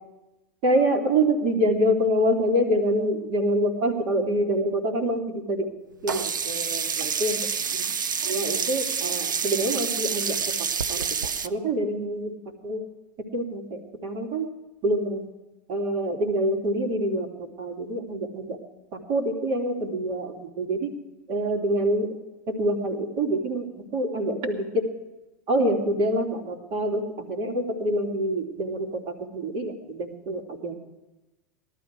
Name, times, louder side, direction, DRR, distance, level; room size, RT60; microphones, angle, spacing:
voice 1, 0.6-5.8 6.0-7.4 7.7-7.8 8.2-10.4 10.9-12.3 12.6-12.8 13.3-14.5 14.8-15.3 15.7-18.6 19.1-21.0 21.3-22.1 22.5-23.7 23.9-24.8 25.5-30.7, right 1 dB, 55° right, 1 dB, 3.3 m, -26 dB
Sink (filling or washing), 6.1-11.5, right 6 dB, 85° right, 0.6 m, -28 dB
18.5 x 12.5 x 4.8 m, 1.0 s
hypercardioid pair, 85°, 10 cm